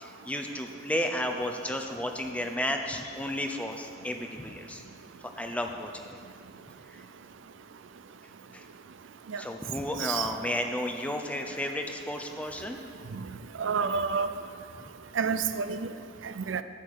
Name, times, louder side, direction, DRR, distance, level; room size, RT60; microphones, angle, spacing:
voice 1, 0.0-4.8 5.4-6.2 6.9-7.0 8.5-8.6 9.4-12.8 14.8-14.9, left 1 dB, 5° left, 4 dB, 0.6 m, -33 dB
voice 2, 13.6-14.3 15.2-15.9 16.2-16.6, right 5 dB, 75° right, 11 dB, 0.5 m, -29 dB
12.0 x 9.1 x 4.8 m, 2.4 s
head